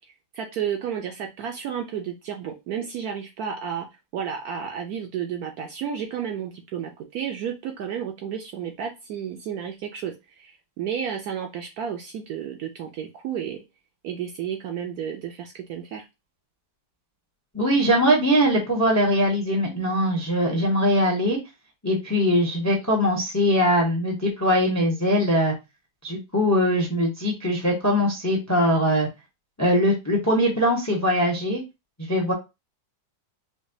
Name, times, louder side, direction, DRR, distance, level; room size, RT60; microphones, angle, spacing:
voice 1, 0.3-3.9 4.1-13.6 14.0-16.1, right 8 dB, 70° right, 3 dB, 0.9 m, -32 dB
voice 2, 17.5-21.4 21.8-25.5 26.0-29.1 29.6-31.6 32.0-32.3, equal, 25° left, -1 dB, 0.3 m, -21 dB
4.9 x 2.2 x 2.6 m, 0.24 s
omnidirectional pair, 2.0 m